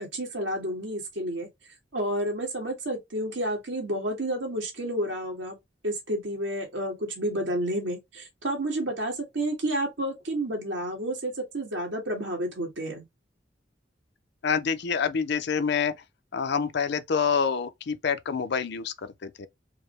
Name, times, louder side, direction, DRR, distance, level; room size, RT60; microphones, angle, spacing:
voice 1, 0.0-1.5 1.9-5.6 5.8-13.0, right 1 dB, 90° right, 1.6 m, -30 dB
voice 2, 14.4-15.9 16.3-18.9 19.2-19.5, left 6 dB, 65° left, 0.5 m, -27 dB
4.7 x 2.1 x 3.2 m
head